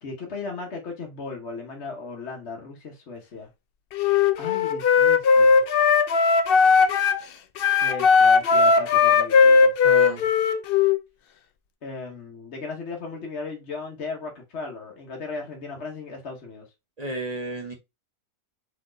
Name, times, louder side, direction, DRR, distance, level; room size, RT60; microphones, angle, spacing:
voice 1, 0.0-3.5 4.4-5.6 7.8-9.7 11.8-16.7, left 4 dB, 50° left, 1.2 m, -36 dB
Wind instrument woodwind instrument, 3.9-7.2 7.6-11.0, left 5 dB, 90° left, 0.5 m, -18 dB
voice 2, 9.8-10.2 17.0-17.7, right 2 dB, 35° right, 0.6 m, -32 dB
4.2 x 3.1 x 3.8 m
omnidirectional pair, 1.6 m